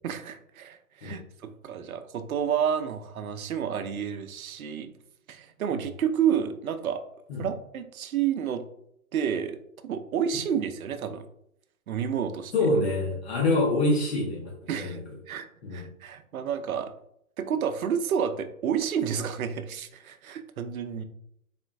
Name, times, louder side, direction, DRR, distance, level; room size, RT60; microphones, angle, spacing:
voice 1, 0.0-4.9 5.3-7.0 7.4-8.6 9.1-9.6 9.8-11.2 11.9-12.5 14.7-15.0 15.3-16.9 17.4-21.0, right 8 dB, 75° right, 9 dB, 0.7 m, -30 dB
voice 2, 12.5-15.0 15.6-15.8, left 2 dB, 45° left, -2 dB, 1.0 m, -26 dB
4.2 x 3.6 x 2.5 m, 0.74 s
hypercardioid pair, 145°, 43 cm